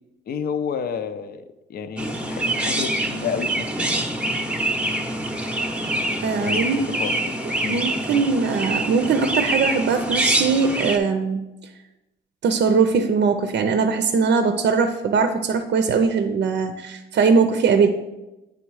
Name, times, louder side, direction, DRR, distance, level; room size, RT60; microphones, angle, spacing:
voice 1, 0.3-1.4 1.7-3.7 6.4-7.4 7.6-7.8, left 6 dB, 50° left, 10 dB, 0.5 m, -30 dB
Chirp tweet, 2.0-11.0, right 1 dB, 5° right, 0.7 m, -25 dB
voice 2, 6.2-6.8 7.7-11.4 12.4-17.9, right 5 dB, 60° right, 7 dB, 0.6 m, -20 dB
9.2 x 3.5 x 4.7 m, 1.0 s
cardioid pair, 90°, 20 cm